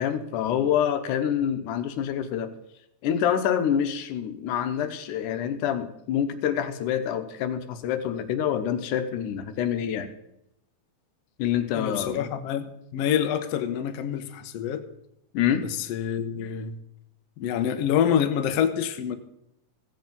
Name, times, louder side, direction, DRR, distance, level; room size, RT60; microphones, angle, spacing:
voice 1, 0.0-2.5 3.0-10.1 11.4-12.3 15.3-15.7, left 9 dB, 90° left, 9 dB, 2.4 m, -26 dB
voice 2, 11.7-14.9 15.6-16.8 17.4-19.2, left 9 dB, 70° left, 9 dB, 1.6 m, -27 dB
15.5 x 7.9 x 5.3 m, 0.81 s
omnidirectional pair, 3.5 m